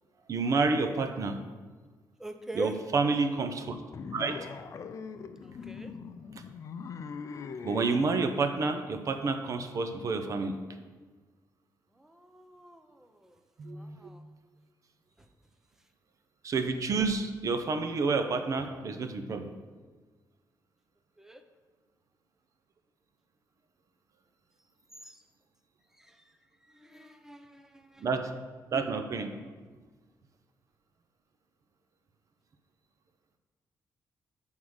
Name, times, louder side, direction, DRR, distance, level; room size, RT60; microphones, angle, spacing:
voice 1, 0.3-1.4 2.5-3.8 4.1-4.4 7.6-10.6 13.6-14.0 16.4-19.5 28.0-28.3 28.7-29.3, right 4 dB, 50° right, 7 dB, 0.6 m, -29 dB
voice 2, 2.2-2.8 5.4-5.9 12.0-13.3 13.7-14.2 21.2-21.4 25.0-25.2 26.0-26.2 26.7-28.0, equal, 5° right, 7 dB, 0.5 m, -43 dB
sound 1, 3.9-7.9, left 5 dB, 50° left, 0.4 m, -41 dB
7.8 x 3.6 x 6.3 m, 1.4 s
cardioid pair, 130°, 7 cm